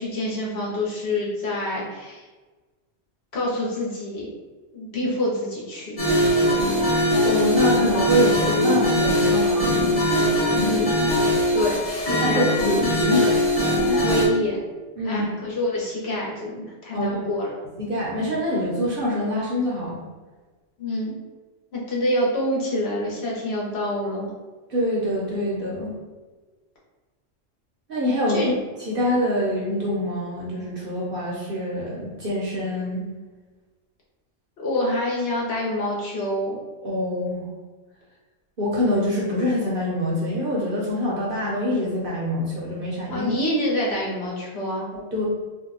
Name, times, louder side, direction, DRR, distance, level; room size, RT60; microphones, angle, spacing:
voice 1, 0.0-2.3 3.3-4.3 4.7-6.0 10.5-11.0 11.5-12.6 13.9-14.6 15.0-17.6 20.8-21.2 21.7-24.3 28.3-28.5 34.6-36.6 43.1-44.9, left 1 dB, 60° left, -5 dB, 1.0 m, -26 dB
sound 1, 6.0-14.2, left 1 dB, 35° left, 0.8 m, -21 dB
voice 2, 7.2-10.0 12.2-13.4 13.9-14.0 15.0-15.2 16.9-17.3 17.8-20.0 24.7-25.9 27.9-28.4 28.9-33.1 36.8-37.5 38.6-43.3 44.9-45.2, equal, 50° right, -5 dB, 0.8 m, -25 dB
2.7 x 2.2 x 3.8 m, 1.3 s
omnidirectional pair, 1.3 m